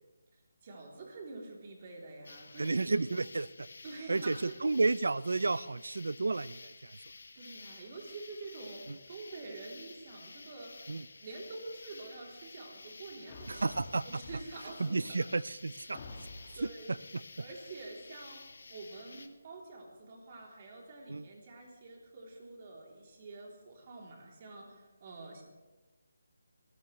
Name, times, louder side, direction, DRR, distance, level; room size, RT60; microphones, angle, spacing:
voice 1, 0.6-3.0 3.8-4.6 7.3-10.9 11.2-15.2 15.9-16.2 16.5-17.0 17.4-18.4 18.7-25.4, right 3 dB, 30° right, -1 dB, 3.3 m, -47 dB
sound 1, 2.2-19.3, left 3 dB, 65° left, 1.3 m, -52 dB
voice 2, 2.6-3.7 4.1-7.0 8.9-9.0 10.9-11.1 13.5-14.0 14.8-16.0 16.5-16.7 17.1-17.2 21.1-21.3, right 3 dB, 75° right, 19 dB, 0.5 m, -32 dB
sound 2, 13.3-14.8 15.4-15.5 15.9-16.8, left 2 dB, 30° left, 1.9 m, -48 dB
25.0 x 14.5 x 3.2 m, 1.2 s
hypercardioid pair, 170°, 0 cm